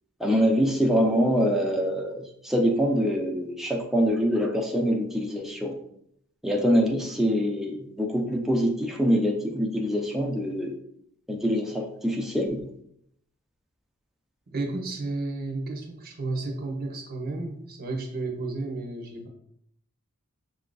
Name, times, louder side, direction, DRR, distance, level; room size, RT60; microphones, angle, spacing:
voice 1, 0.2-5.7 6.4-10.8 11.3-12.6, equal, ahead, 0 dB, 0.4 m, -24 dB
voice 2, 14.5-19.3, right 2 dB, 45° right, 2 dB, 0.7 m, -32 dB
6.6 x 2.5 x 2.2 m, 0.74 s
head